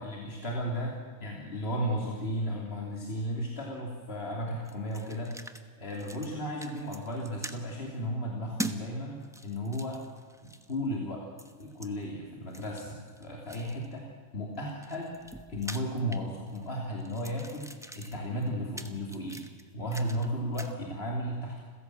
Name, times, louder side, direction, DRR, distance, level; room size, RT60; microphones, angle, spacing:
voice 1, 0.0-5.3 5.8-10.0 10.4-11.2 11.6-15.2 15.5-19.4 19.7-21.6, equal, 50° left, -2 dB, 3.3 m, -34 dB
sound 1, 4.6-5.6 5.9-6.3 6.6-7.6 8.6-8.8 9.2-10.8 11.4-11.9 12.5-13.9 14.5-16.7 17.0-20.3 20.5-20.7, right 1 dB, 5° right, 1.0 m, -43 dB
29.0 x 16.5 x 7.8 m, 1.5 s
omnidirectional pair, 1.3 m